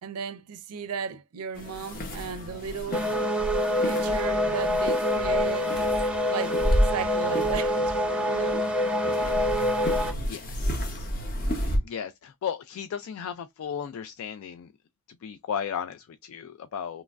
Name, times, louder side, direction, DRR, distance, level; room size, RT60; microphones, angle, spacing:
voice 1, 0.0-3.0 3.8-5.9 6.3-7.9 8.3-8.6, right 6 dB, 85° right, 0.4 m, -35 dB
sound 1, 1.5-11.8, equal, 40° left, 0.7 m, -31 dB
sound 2, 2.9-10.1, left 1 dB, 5° right, 0.5 m, -26 dB
voice 2, 10.3-14.7 15.2-17.0, left 8 dB, 70° left, 0.3 m, -36 dB
3.0 x 2.2 x 2.3 m
head